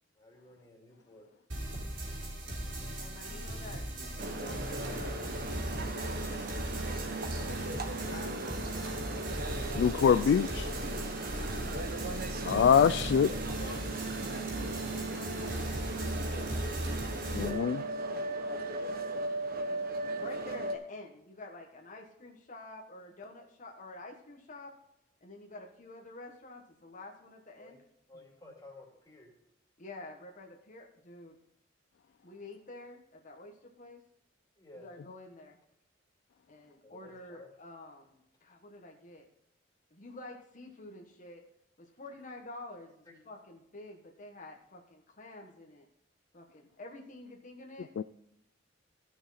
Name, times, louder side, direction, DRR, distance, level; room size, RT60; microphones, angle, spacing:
voice 1, 0.1-1.3 15.1-15.2 18.3-18.7 27.6-27.8 28.1-29.4 34.6-34.9 36.8-37.5 43.1-43.2, left 1 dB, 20° left, -2 dB, 2.7 m, -55 dB
sound 1, 1.5-17.5, right 1 dB, 75° right, 3.5 m, -38 dB
voice 2, 3.0-5.2 5.7-9.3 11.0-16.8 19.6-19.8 20.1-24.7 25.2-27.8 28.1-28.2 29.8-31.3 32.2-34.0 34.8-35.6 36.5-39.2 39.9-41.4 41.8-45.9 46.3-47.9, left 2 dB, 45° left, 0 dB, 1.4 m, -49 dB
sound 2, 4.2-20.8, right 2 dB, 55° right, 1.2 m, -37 dB
voice 3, 9.8-10.7 12.5-13.3 17.3-17.8 48.0-48.1, left 7 dB, 60° left, 12 dB, 0.3 m, -24 dB
14.0 x 6.3 x 4.2 m, 0.80 s
head